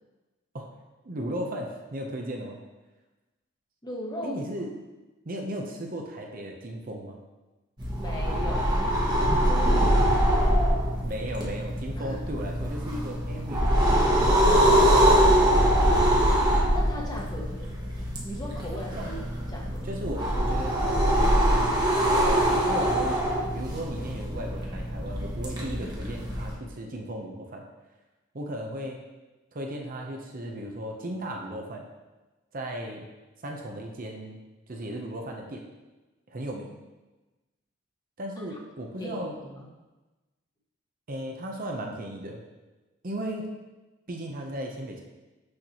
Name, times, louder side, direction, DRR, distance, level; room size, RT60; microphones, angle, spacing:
voice 1, 1.0-2.6 4.2-4.7 5.3-7.2 9.7-10.1 11.0-15.1 19.0-19.1 19.8-21.8 22.1-23.2 23.5-27.6 28.3-29.0 29.5-31.8 32.5-33.1 33.4-34.4 34.7-35.7 36.3-36.8 38.2-39.3 41.1-42.4 43.0-43.5 44.1-45.0, right 1 dB, 45° right, 1 dB, 0.7 m, -36 dB
voice 2, 3.8-4.4 7.9-9.0 9.4-10.5 12.0-12.2 16.7-17.7 18.2-19.2 19.5-19.9 39.0-39.7, left 1 dB, 20° left, -2 dB, 1.0 m, -38 dB
sound 1, 7.8-26.5, equal, 20° right, 1.0 m, -23 dB
6.5 x 6.4 x 2.9 m, 1.1 s
head